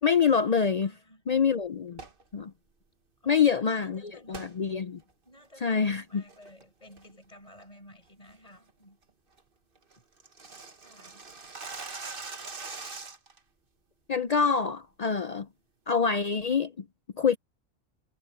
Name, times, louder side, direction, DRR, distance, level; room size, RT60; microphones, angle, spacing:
voice 1, 0.0-0.9 1.3-2.0 2.3-2.5 3.3-5.0 5.6-6.2 14.1-15.5 15.9-16.8 17.2-17.4, left 6 dB, 75° left, 0.3 m, -26 dB
voice 2, 0.8-1.2 3.2-4.6 5.2-9.0 10.0-10.1 10.8-11.3, left 1 dB, 25° left, 7.4 m, -54 dB
sound 1, 1.9-2.2 4.3-4.5 5.0-5.1 5.7-5.9 6.3-6.6 7.0-7.3 7.6-7.7 8.1-8.3 8.7-8.8 9.1-9.2 9.4-9.5 9.8-13.4, right 4 dB, 40° right, 1.7 m, -42 dB
omnidirectional pair, 1.5 m